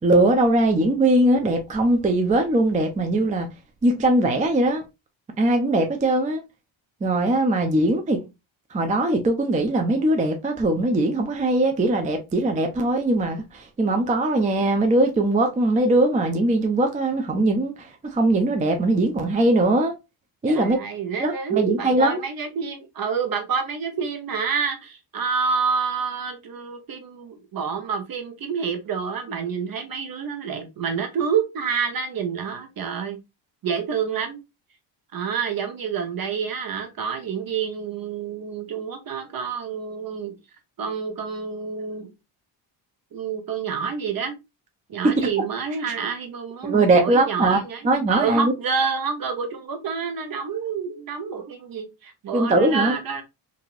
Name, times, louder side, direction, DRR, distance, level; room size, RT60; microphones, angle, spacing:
voice 1, 0.0-3.5 3.8-4.8 5.4-6.4 7.0-8.2 8.7-19.9 20.4-20.8 21.2-22.2 45.2-45.3 46.6-47.6 47.8-48.5 52.3-52.9, right 2 dB, 15° right, 0.4 m, -20 dB
voice 2, 20.5-33.2 33.6-34.4 35.1-40.4 40.8-42.1 43.1-44.4 44.9-53.2, right 6 dB, 45° right, 0.9 m, -28 dB
2.9 x 2.6 x 2.4 m
cardioid pair, 90°, 47 cm